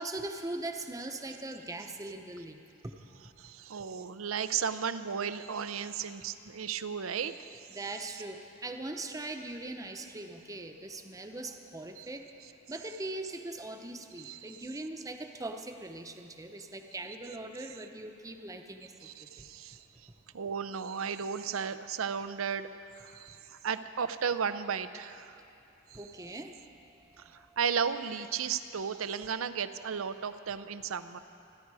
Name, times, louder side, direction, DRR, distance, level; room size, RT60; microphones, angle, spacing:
voice 1, 0.0-2.6 2.8-3.0 7.7-12.2 12.7-18.9 19.2-19.4 25.9-26.6 27.1-27.2, right 2 dB, 15° right, 5 dB, 0.8 m, -40 dB
voice 2, 3.4-7.7 12.0-12.1 14.2-14.6 19.0-19.8 20.3-22.7 23.0-25.4 25.9-26.0 27.2-31.2, right 7 dB, 85° right, 12 dB, 0.6 m, -34 dB
27.0 x 10.5 x 4.8 m, 2.7 s
head